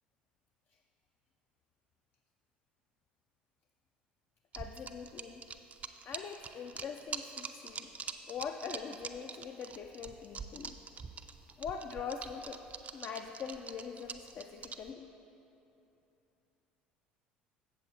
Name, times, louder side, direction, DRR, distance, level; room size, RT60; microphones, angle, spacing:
sound 1, 4.5-14.9, right 6 dB, 30° right, 0.4 m, -43 dB
voice 1, 4.6-5.4 6.0-7.9 8.3-10.8 11.6-12.6 12.9-15.1, left 6 dB, 45° left, 5 dB, 0.4 m, -42 dB
8.0 x 7.1 x 4.2 m, 2.9 s
figure-of-eight pair, 60°, 5 cm